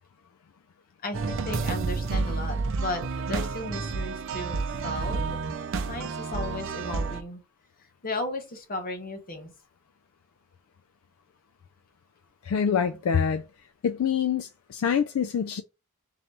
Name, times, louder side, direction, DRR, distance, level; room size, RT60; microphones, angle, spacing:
voice 1, 1.0-5.4 5.9-7.4 8.0-9.5, left 2 dB, 40° left, 1.0 m, -35 dB
sound 1, 1.1-7.2, right 4 dB, 60° right, 0.5 m, -30 dB
voice 2, 12.4-13.4 13.8-15.6, left 7 dB, 70° left, 0.3 m, -25 dB
3.8 x 2.9 x 3.2 m
head